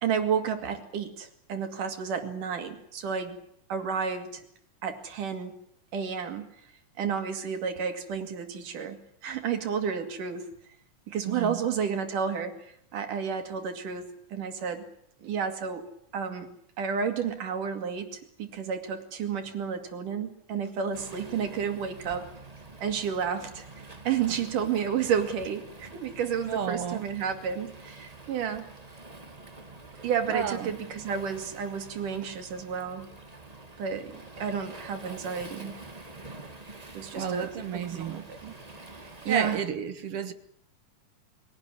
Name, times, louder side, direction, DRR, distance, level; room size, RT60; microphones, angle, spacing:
voice 1, 0.0-3.4 3.7-4.4 4.8-5.6 5.9-6.5 7.0-9.0 9.2-10.4 11.1-14.8 15.2-15.8 16.1-16.5 16.8-22.3 22.8-23.7 24.1-28.7 30.0-33.1 33.8-35.7 36.9-38.5 39.3-39.6, right 7 dB, 70° right, 7 dB, 3.9 m, -31 dB
voice 2, 11.3-11.6 26.4-27.1 30.3-30.7 37.1-38.2 39.3-40.3, right 7 dB, 55° right, 11 dB, 1.9 m, -31 dB
Waves surf, 20.9-39.6, right 2 dB, 15° right, 1.5 m, -47 dB
23.0 x 17.5 x 9.9 m, 0.71 s
omnidirectional pair, 3.8 m